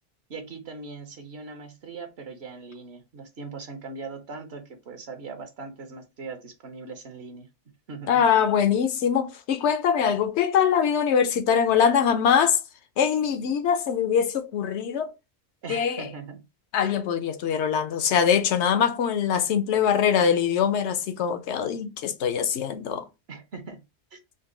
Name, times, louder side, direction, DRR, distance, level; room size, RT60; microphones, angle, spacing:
voice 1, 0.3-7.5 7.9-8.2 15.6-16.4 23.3-23.8 24.1-24.2, right 4 dB, 70° right, 1.1 m, -40 dB
voice 2, 8.1-12.6 13.0-15.1 15.7-16.1 16.7-23.1, left 7 dB, 85° left, 0.9 m, -23 dB
3.9 x 2.2 x 3.7 m
omnidirectional pair, 1.1 m